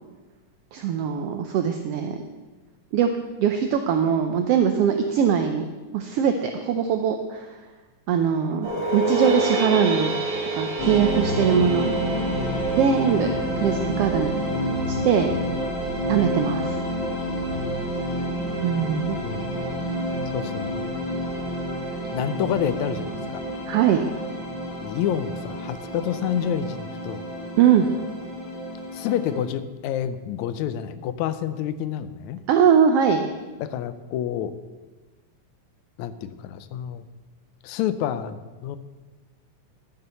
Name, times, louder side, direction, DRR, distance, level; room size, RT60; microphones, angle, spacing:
voice 1, 0.7-2.2 2.9-3.1 3.4-5.7 5.9-7.5 8.1-10.1 10.5-11.9 12.8-13.3 13.6-14.4 14.9-15.3 16.1-16.8 18.6-19.2 23.7-24.0 27.6-27.9 32.5-33.3, right 8 dB, 75° right, 6 dB, 1.4 m, -21 dB
sound 1, 8.6-13.9, right 1 dB, 50° right, 2.6 m, -27 dB
sound 2, 10.8-29.4, equal, 45° left, 2.9 m, -29 dB
voice 2, 18.9-19.4 20.3-20.8 22.1-23.4 24.8-27.2 28.9-32.4 33.6-34.6 36.0-37.0 37.6-38.8, left 10 dB, 80° left, 12 dB, 2.0 m, -28 dB
12.0 x 7.7 x 6.8 m, 1.2 s
omnidirectional pair, 3.4 m